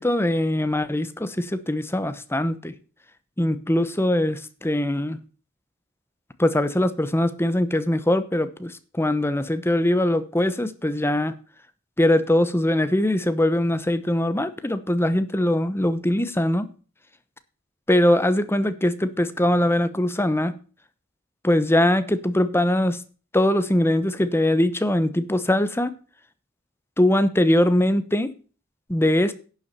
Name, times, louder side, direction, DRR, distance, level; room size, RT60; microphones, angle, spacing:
voice 1, 0.0-2.7 3.4-5.2 6.4-11.3 12.0-16.7 17.9-20.6 21.4-23.0 23.3-25.9 27.0-28.3 28.9-29.3, left 1 dB, 10° left, 12 dB, 0.9 m, -22 dB
11.0 x 7.0 x 6.8 m, 0.38 s
head